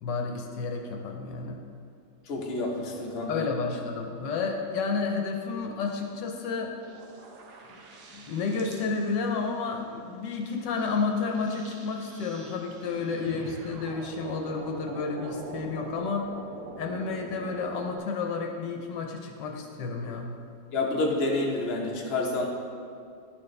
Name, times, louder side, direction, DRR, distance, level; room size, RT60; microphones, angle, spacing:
voice 1, 0.0-1.6 3.3-6.8 7.6-7.7 8.1-16.3 16.8-20.4, left 4 dB, 75° left, 2 dB, 1.3 m, -31 dB
voice 2, 2.3-3.5 20.7-22.5, left 2 dB, 45° left, -1 dB, 1.0 m, -28 dB
sound 1, 6.8-9.5 10.4-18.0, right 3 dB, 70° right, 1.2 m, -44 dB
11.5 x 4.4 x 3.2 m, 2.3 s
omnidirectional pair, 1.9 m